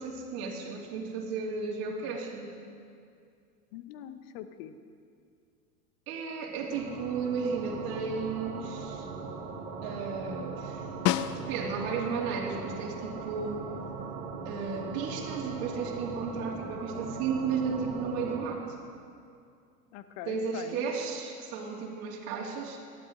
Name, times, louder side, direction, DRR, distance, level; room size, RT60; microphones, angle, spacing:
voice 1, 0.0-2.5 6.1-9.1 9.8-10.9 11.3-13.7 14.4-18.6 20.3-22.8, right 5 dB, 50° right, -1 dB, 2.9 m, -34 dB
voice 2, 3.7-4.8 19.9-20.9, left 10 dB, 50° left, 10 dB, 1.1 m, -43 dB
sound 1, 6.7-18.5, right 4 dB, 80° right, 1.9 m, -39 dB
Snare drum, 11.1-12.0 16.4-16.5, left 13 dB, 35° left, 0.4 m, -30 dB
18.5 x 12.0 x 3.9 m, 2.3 s
hypercardioid pair, 95°, 47 cm